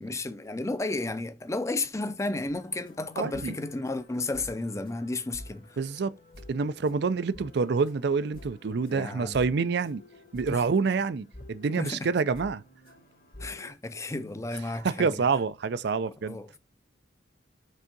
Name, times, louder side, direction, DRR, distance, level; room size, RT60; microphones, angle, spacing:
voice 1, 0.0-5.8 8.9-9.4 10.5-10.6 11.8-12.1 13.4-15.2 16.2-16.6, left 2 dB, 15° left, 0.5 m, -33 dB
sound 1, 2.5-13.7, left 1 dB, 50° left, 1.4 m, -50 dB
voice 2, 3.2-3.5 5.8-6.1 6.5-10.0 10.3-12.6 14.8-16.4, right 5 dB, 60° right, 0.4 m, -27 dB
5.4 x 3.6 x 5.2 m
head